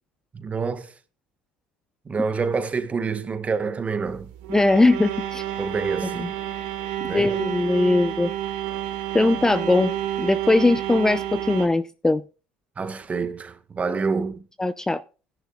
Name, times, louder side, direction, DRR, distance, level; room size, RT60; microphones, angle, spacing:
voice 1, 0.3-0.9 2.0-4.3 5.6-6.3 7.0-7.4 12.8-14.4, right 5 dB, 25° right, 1.5 m, -27 dB
sound 1, 4.0-11.7, right 11 dB, 70° right, 2.7 m, -30 dB
voice 2, 4.5-5.4 6.2-6.3 7.1-8.3 9.1-9.9 10.2-12.2 14.6-15.0, left 2 dB, 10° left, 0.6 m, -20 dB
16.0 x 10.5 x 2.3 m
hypercardioid pair, 85°, 5 cm